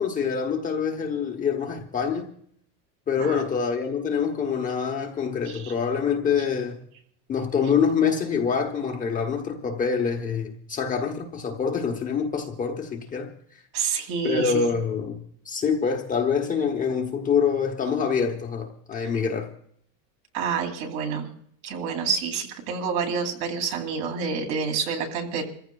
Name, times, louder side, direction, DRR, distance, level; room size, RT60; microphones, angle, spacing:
voice 1, 0.0-2.3 3.1-6.8 7.3-13.3 14.2-15.2 15.4-19.5, left 6 dB, 15° left, 0.8 m, -25 dB
voice 2, 13.7-14.7 20.3-21.3 21.6-25.4, right 6 dB, 55° right, 2.8 m, -28 dB
28.0 x 15.0 x 2.3 m
cardioid pair, 175°, 47 cm